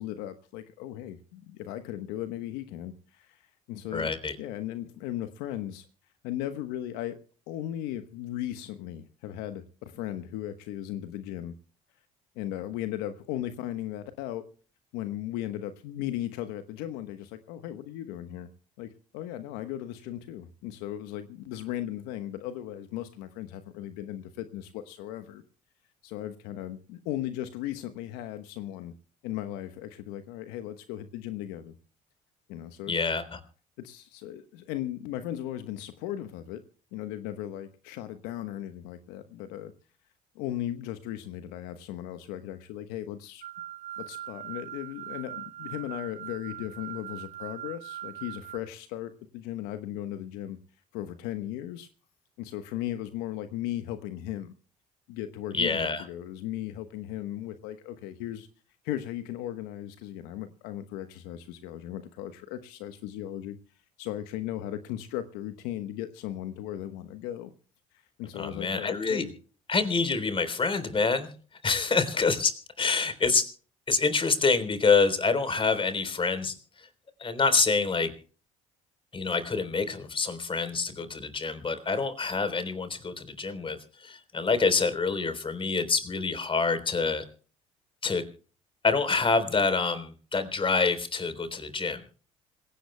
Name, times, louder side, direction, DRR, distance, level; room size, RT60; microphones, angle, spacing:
voice 1, 0.0-5.9 6.2-7.1 7.5-11.5 12.3-14.4 14.9-18.5 18.8-18.9 19.1-25.4 26.0-28.9 29.2-31.7 32.5-32.9 33.8-36.6 36.9-39.7 40.3-43.4 44.0-50.6 50.9-51.9 52.4-54.5 55.1-58.5 58.8-63.6 64.0-67.5 67.9-69.3, left 12 dB, 75° left, 10 dB, 1.1 m, -37 dB
voice 2, 3.9-4.4 32.9-33.4 55.5-56.0 68.3-69.2 69.7-71.3 71.6-73.5 73.9-76.9 77.2-78.1 79.1-87.2 88.0-88.2 88.8-92.0, left 4 dB, 30° left, 10 dB, 3.7 m, -27 dB
sound 1, 43.4-48.6, right 12 dB, 60° right, 2.2 m, -41 dB
26.5 x 17.0 x 2.2 m, 0.40 s
hypercardioid pair, 60°, 17 cm